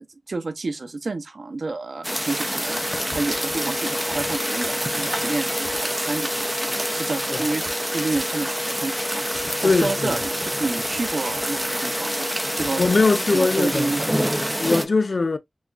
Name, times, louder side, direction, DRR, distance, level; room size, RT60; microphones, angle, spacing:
voice 1, 0.0-7.6 7.9-9.3 9.6-12.3 12.5-12.9 13.3-14.1, right 3 dB, 80° right, 0.6 m, -30 dB
sound 1, 2.0-14.8, equal, 10° right, 0.7 m, -27 dB
sound 2, 2.7-14.0, left 3 dB, 85° left, 0.8 m, -35 dB
voice 2, 9.6-10.2 12.7-13.9 14.6-15.4, left 3 dB, 65° left, 0.4 m, -21 dB
6.0 x 2.2 x 2.4 m
wide cardioid pair, 80°, 0 cm